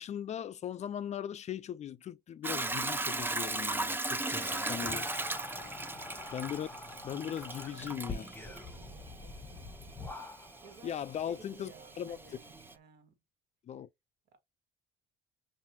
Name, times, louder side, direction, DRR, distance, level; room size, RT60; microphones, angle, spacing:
voice 1, 0.0-5.1 6.3-6.7 7.0-8.3 10.8-12.2 13.7-13.9, left 9 dB, 40° left, 0.4 m, -39 dB
Hiss / Toilet flush / Trickle dribble, 2.4-12.7, right 2 dB, 10° right, 0.6 m, -38 dB
Whispering, 4.3-10.7, left 3 dB, 10° left, 1.0 m, -45 dB
sound 1, 5.3-12.8, right 4 dB, 30° right, 1.0 m, -59 dB
voice 2, 7.7-9.6 10.3-13.2 14.3-14.4, right 5 dB, 70° right, 1.6 m, -58 dB
5.5 x 2.6 x 2.6 m
supercardioid pair, 85°, 17 cm